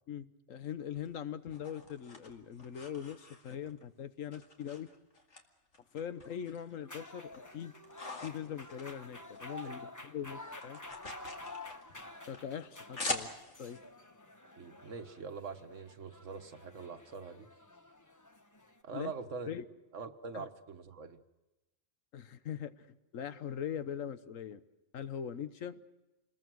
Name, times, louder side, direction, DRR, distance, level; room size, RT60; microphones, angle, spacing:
voice 1, 0.1-4.9 5.9-7.7 8.2-10.8 12.3-13.3 13.6-13.8 18.9-19.1 19.5-19.6 20.3-20.5 22.1-22.9 23.1-24.6 24.9-25.8, left 9 dB, 85° left, 12 dB, 1.4 m, -41 dB
sound 1, 1.0-3.8 4.3-5.4 5.7-6.8 7.1-9.7 10.0-13.8, left 2 dB, 65° left, 2.5 m, -44 dB
sound 2, 6.8-18.8, left 2 dB, 15° left, 1.0 m, -50 dB
voice 2, 14.6-17.5 18.8-19.5 19.9-21.2, right 5 dB, 70° right, 8 dB, 1.6 m, -44 dB
28.0 x 21.0 x 6.2 m, 1.0 s
omnidirectional pair, 1.3 m